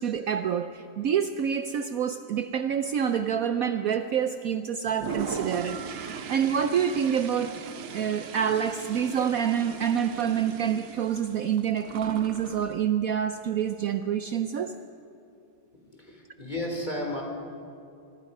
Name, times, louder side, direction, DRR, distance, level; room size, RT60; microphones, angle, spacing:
voice 1, 0.0-7.6 7.9-14.7, right 8 dB, 80° right, 9 dB, 0.7 m, -27 dB
Toilet flush, 4.8-12.7, right 6 dB, 65° right, 1.7 m, -38 dB
voice 2, 15.9-17.2, left 1 dB, 20° left, 1 dB, 3.3 m, -33 dB
25.0 x 23.5 x 5.4 m, 2.6 s
omnidirectional pair, 2.3 m